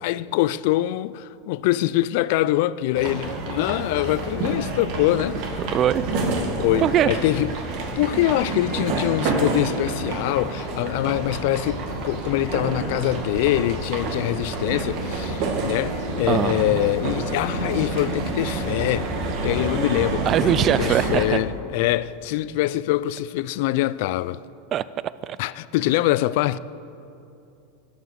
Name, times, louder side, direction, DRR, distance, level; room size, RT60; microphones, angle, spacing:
voice 1, 0.0-5.4 6.6-7.6 8.0-19.1 19.4-24.4 25.4-26.6, left 15 dB, 65° left, 0.3 m, -24 dB
sound 1, 2.9-21.2, right 2 dB, 60° right, 2.1 m, -28 dB
voice 2, 5.7-6.0 6.8-7.1 16.3-16.8 20.3-21.4 24.7-24.8 25.2-25.4, right 10 dB, 40° right, 0.4 m, -21 dB
13.0 x 9.4 x 6.8 m
hypercardioid pair, 110°, 0 cm